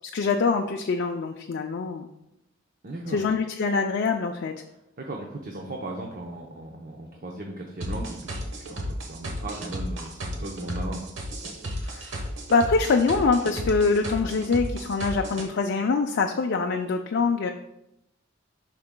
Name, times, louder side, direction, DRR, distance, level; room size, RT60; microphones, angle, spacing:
voice 1, 0.0-2.1 3.1-4.5 11.8-12.2 12.5-17.5, left 4 dB, 60° left, 3 dB, 0.4 m, -24 dB
voice 2, 2.8-3.2 5.0-11.0, right 1 dB, 45° right, 0 dB, 0.7 m, -37 dB
sound 1, 7.8-15.5, equal, 70° right, 1.1 m, -34 dB
8.5 x 5.9 x 2.2 m, 0.85 s
head